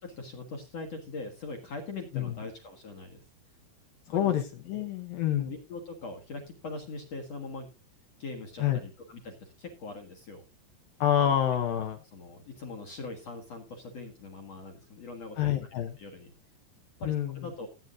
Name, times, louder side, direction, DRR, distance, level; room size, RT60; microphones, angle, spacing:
voice 1, 0.0-3.2 4.1-4.4 5.3-7.7 8.2-10.4 11.3-11.4 12.1-15.4 15.7-16.3 17.0-17.7, left 3 dB, 55° left, 2 dB, 1.9 m, -41 dB
voice 2, 4.1-4.4 4.7-5.5 8.6-8.8 11.0-12.0 15.4-16.0 17.0-17.3, left 10 dB, 70° left, 6 dB, 2.2 m, -27 dB
17.0 x 9.2 x 2.6 m, 0.30 s
omnidirectional pair, 5.3 m